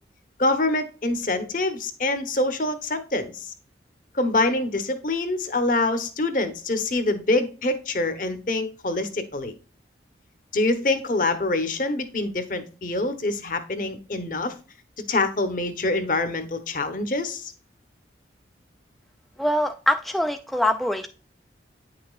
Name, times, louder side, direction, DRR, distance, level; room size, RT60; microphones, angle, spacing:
voice 1, 0.4-3.5 4.1-9.5 10.5-14.5 15.1-17.5, left 2 dB, 45° left, 9 dB, 1.0 m, -25 dB
voice 2, 19.4-21.1, equal, ahead, 5 dB, 0.3 m, -23 dB
9.4 x 5.9 x 2.4 m, 0.37 s
head